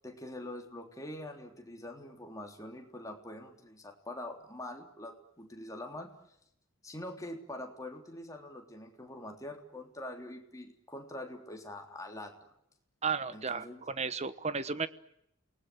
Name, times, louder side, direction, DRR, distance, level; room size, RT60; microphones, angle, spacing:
voice 1, 0.0-6.1 6.8-12.3 13.3-13.9, left 1 dB, 15° left, 3 dB, 3.4 m, -44 dB
voice 2, 13.0-14.9, right 5 dB, 35° right, 13 dB, 1.2 m, -34 dB
28.5 x 20.0 x 9.5 m, 0.77 s
head